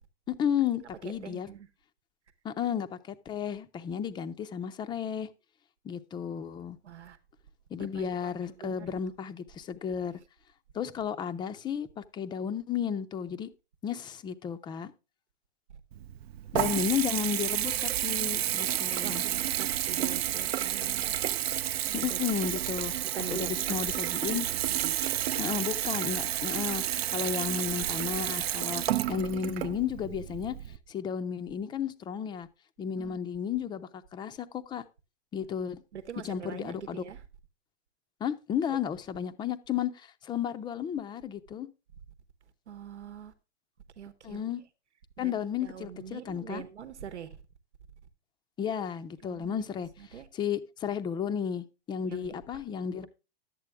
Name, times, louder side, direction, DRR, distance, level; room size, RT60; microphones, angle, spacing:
voice 1, 0.3-1.5 2.4-5.3 5.8-6.8 7.7-10.2 10.7-13.5 13.8-14.9 16.5-19.2 21.9-22.9 23.2-24.5 25.4-30.6 30.9-32.5 32.8-34.8 35.3-35.8 36.2-37.0 38.2-41.7 44.2-44.6 45.2-46.6 48.6-53.1, left 8 dB, 15° left, 0.5 m, -33 dB
voice 2, 1.2-1.7 6.8-7.2 7.9-8.3 8.6-9.0 19.0-21.0 22.0-22.2 23.1-23.8 24.1-24.2 24.5-25.0 33.0-33.2 35.9-37.2 42.7-43.3 44.0-44.4 45.2-45.3 45.6-47.4 49.2-49.6 50.0-50.3 52.1-52.4, right 8 dB, 85° right, 1.1 m, -43 dB
Water tap faucet / Bathtub (filling or washing) / Trickle dribble, 15.9-30.8, right 12 dB, 65° right, 0.6 m, -31 dB
11.0 x 8.4 x 3.4 m
hypercardioid pair, 125°, 33 cm